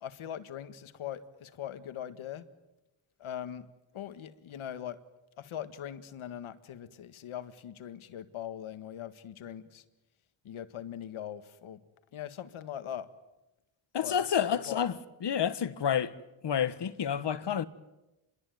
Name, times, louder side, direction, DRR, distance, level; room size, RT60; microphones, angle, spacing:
voice 1, 0.0-2.5 3.2-3.7 3.9-5.0 5.4-9.8 10.4-11.8 12.1-13.1 14.0-14.8, left 10 dB, 90° left, 1.9 m, -41 dB
voice 2, 13.9-15.0 15.2-16.1 16.4-17.6, left 8 dB, 60° left, 1.5 m, -29 dB
27.0 x 22.5 x 9.4 m
cardioid pair, 90°, 47 cm